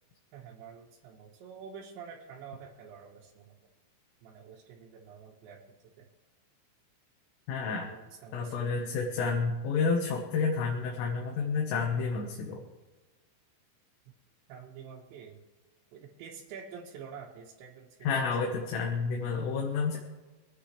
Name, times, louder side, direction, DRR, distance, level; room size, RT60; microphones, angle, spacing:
voice 1, 0.3-3.5 4.2-5.6 6.0-6.1 7.7-8.6 14.5-15.4 15.9-18.6, right 6 dB, 70° right, -4 dB, 3.4 m, -48 dB
voice 2, 7.5-7.9 8.3-12.7 18.0-20.0, left 5 dB, 85° left, -1 dB, 4.0 m, -30 dB
25.0 x 9.7 x 3.3 m, 1.3 s
omnidirectional pair, 5.6 m